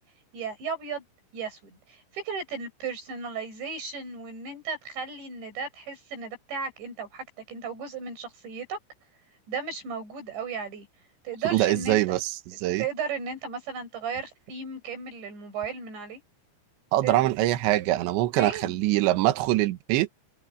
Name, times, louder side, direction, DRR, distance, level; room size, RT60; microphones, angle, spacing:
voice 1, 0.3-1.0 1.3-8.8 9.5-10.9 11.2-12.0 12.8-16.2 17.0-17.3 18.4-18.8, right 5 dB, 60° right, 10.5 m, -35 dB
voice 2, 11.5-12.3 12.6-12.8 16.9-20.2, right 16 dB, 75° right, 3.2 m, -23 dB
omnidirectional pair, 6.0 m